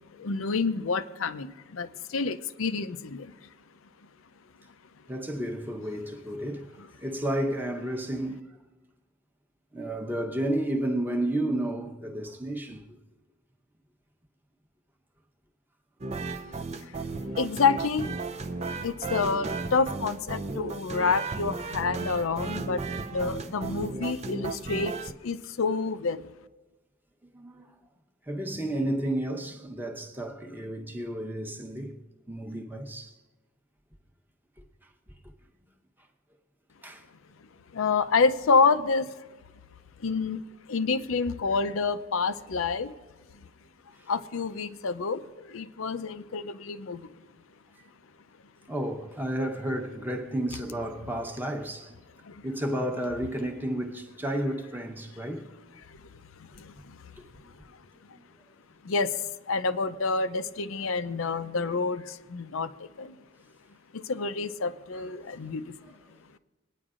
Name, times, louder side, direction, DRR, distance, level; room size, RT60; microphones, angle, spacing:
voice 1, 0.2-1.5 1.7-1.9 2.1-3.3 17.4-18.1 18.8-22.8 23.1-24.9 25.2-26.2 37.7-39.0 40.0-40.4 40.7-42.9 44.1-45.2 45.5-47.0 58.9-59.1 59.5-62.0 62.3-62.7 63.0-63.1 64.1-65.6, left 4 dB, 75° left, 0.5 m, -27 dB
voice 2, 5.1-6.6 7.0-8.5 9.7-13.0 27.3-27.7 28.3-32.0 32.3-33.2 36.8-37.0 48.7-52.0 52.4-55.5 57.2-57.3 58.1-58.2 65.4-65.5, right 1 dB, 10° right, 0.9 m, -32 dB
sound 1, 16.0-25.1, right 3 dB, 30° right, 0.4 m, -35 dB
22.0 x 9.8 x 2.5 m
head